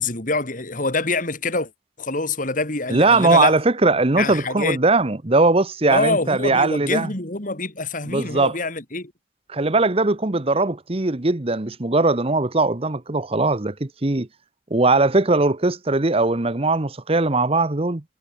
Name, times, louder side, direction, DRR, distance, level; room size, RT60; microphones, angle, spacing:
voice 1, 0.0-1.7 2.0-3.6 4.2-4.8 5.9-9.1, left 3 dB, 45° left, 3.2 m, -25 dB
voice 2, 2.9-7.1 8.0-8.6 9.5-14.3 14.7-18.0, right 3 dB, 30° right, 1.0 m, -20 dB
head